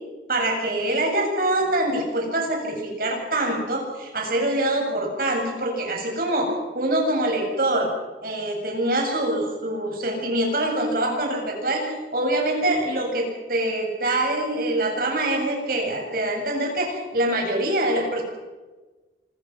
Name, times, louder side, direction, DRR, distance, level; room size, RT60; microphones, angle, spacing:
voice 1, 0.3-7.9 8.2-18.2, right 1 dB, 55° right, 1 dB, 8.0 m, -24 dB
26.5 x 23.0 x 6.0 m, 1.3 s
head